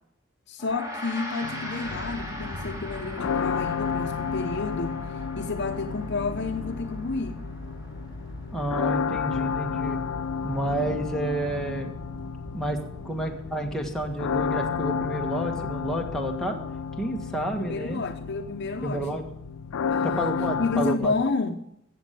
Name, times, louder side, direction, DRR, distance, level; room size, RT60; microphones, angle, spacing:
voice 1, 0.5-5.0 5.4-7.4 10.8-11.1 17.6-19.2 19.9-21.6, left 3 dB, 55° left, 0.8 m, -30 dB
Gong, 0.6-10.1, equal, 15° right, 2.6 m, -41 dB
sound 1, 1.4-21.0, left 6 dB, 85° left, 0.4 m, -32 dB
sound 2, 1.8-21.3, equal, 20° left, 2.4 m, -42 dB
voice 2, 8.5-10.0 10.4-11.9 12.5-12.8 13.0-16.6 17.0-18.0 18.8-19.2 20.0-21.1, right 1 dB, ahead, 1.6 m, -30 dB
15.0 x 7.4 x 6.9 m
head